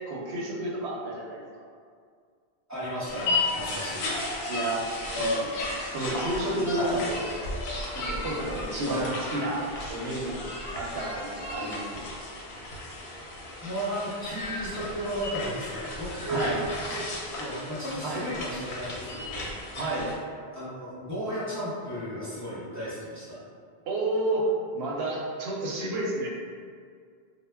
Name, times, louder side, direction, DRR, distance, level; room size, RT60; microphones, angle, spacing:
voice 1, 0.0-1.4 4.5-7.3 7.9-9.6 9.9-10.4 10.7-12.0 16.3-16.6 18.0-18.2 19.0-19.2 19.7-20.1 23.9-24.5 24.7-26.3, right 1 dB, 80° right, -3 dB, 0.8 m, -31 dB
voice 2, 2.7-4.0 6.7-6.9 8.9-9.1 13.6-16.5 16.9-17.1 17.4-19.5 20.5-23.4, equal, 20° right, -11 dB, 0.7 m, -34 dB
sound 1, 3.1-20.2, left 2 dB, 90° left, 0.8 m, -34 dB
2.1 x 2.1 x 3.3 m, 2.1 s
omnidirectional pair, 1.1 m